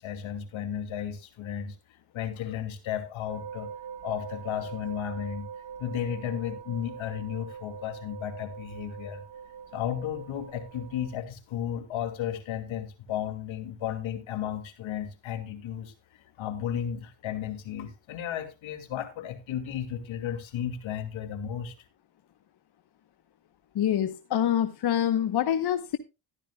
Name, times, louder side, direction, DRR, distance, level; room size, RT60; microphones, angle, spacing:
voice 1, 0.0-1.8 2.1-3.7 4.0-5.5 5.8-9.2 9.7-15.9 16.4-21.7, left 9 dB, 75° left, 8 dB, 2.6 m, -34 dB
sound 1, 3.3-11.2, right 7 dB, 50° right, 3.5 m, -43 dB
voice 2, 23.7-26.0, left 10 dB, 55° left, 10 dB, 1.1 m, -26 dB
14.5 x 12.0 x 2.3 m, 0.25 s
cardioid pair, 90°, 48 cm